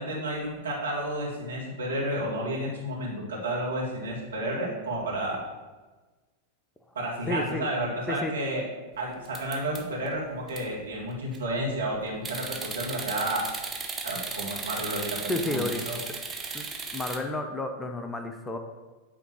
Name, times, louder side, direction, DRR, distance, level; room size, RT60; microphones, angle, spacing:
voice 1, 0.0-5.4 7.0-8.7 9.0-13.5 14.0-16.0, right 1 dB, 70° right, -4 dB, 2.1 m, -31 dB
voice 2, 7.3-7.7 8.1-8.3 15.3-15.8 16.5-18.6, left 2 dB, 10° left, 5 dB, 0.6 m, -31 dB
sound 1, 9.2-10.1 10.5-10.6 11.1-11.5 12.2-17.2, right 4 dB, 15° right, 0.9 m, -36 dB
9.0 x 3.5 x 5.9 m, 1.3 s
figure-of-eight pair, 90°, 0 cm